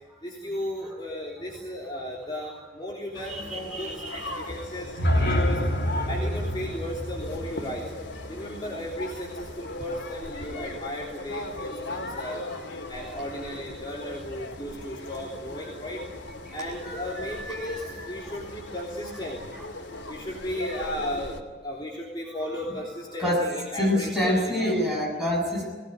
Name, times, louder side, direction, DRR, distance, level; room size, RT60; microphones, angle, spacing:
voice 1, 0.2-5.6 6.1-7.9 8.3-12.4 12.9-16.0 16.5-19.5 20.1-21.4 21.6-24.9, equal, 25° left, -3 dB, 3.4 m, -35 dB
sound 1, 3.1-21.4, left 2 dB, 85° left, 2.7 m, -39 dB
voice 2, 3.3-4.4 12.1-12.3 13.0-13.2 13.9-14.0 16.5-16.6 16.8-18.3 19.6-19.7 22.4-22.7 23.2-25.7, left 1 dB, 5° right, -3 dB, 7.8 m, -29 dB
sound 2, 4.8-8.9, equal, 70° left, 3.0 m, -28 dB
21.0 x 18.5 x 9.5 m, 1.4 s
head